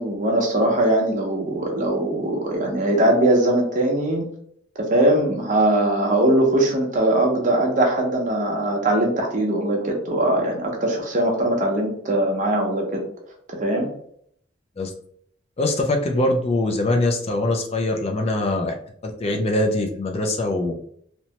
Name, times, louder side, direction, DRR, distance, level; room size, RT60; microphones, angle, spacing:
voice 1, 0.0-4.3 4.8-13.0 13.5-13.9, right 1 dB, 40° right, 0 dB, 0.7 m, -21 dB
voice 2, 15.6-18.7 19.0-20.7, left 2 dB, 30° left, 3 dB, 0.3 m, -22 dB
2.8 x 2.1 x 2.8 m, 0.66 s
head